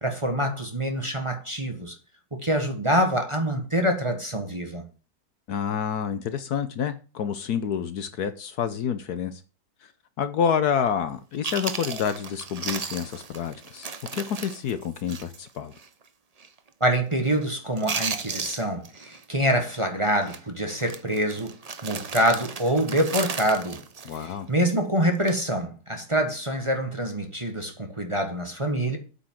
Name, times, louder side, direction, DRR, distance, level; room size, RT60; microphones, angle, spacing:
voice 1, 0.0-1.9 2.3-4.9 16.8-23.8 24.1-29.0, right 1 dB, 20° right, 1.3 m, -26 dB
voice 2, 5.5-9.4 10.2-15.7 24.1-24.5, left 7 dB, 65° left, 1.3 m, -28 dB
Chewing mastication, 11.1-11.2 11.4-15.5 15.8-15.9 16.4-16.7 17.0-17.4 17.7-19.2 19.5-19.8 20.2-20.4 20.8-24.7 25.1-25.4, right 5 dB, 55° right, 0.4 m, -35 dB
8.4 x 5.5 x 7.3 m
omnidirectional pair, 1.9 m